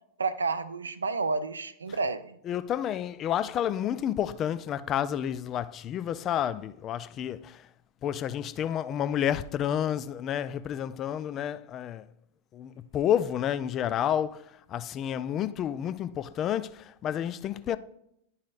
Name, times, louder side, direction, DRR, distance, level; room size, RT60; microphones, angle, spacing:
voice 1, 0.2-2.4, right 4 dB, 75° right, 0.4 m, -30 dB
voice 2, 2.5-7.6 8.0-12.0 12.5-14.4 14.7-17.8, left 10 dB, 30° left, 0.4 m, -30 dB
11.0 x 5.6 x 2.5 m
figure-of-eight pair, 90°, 0 cm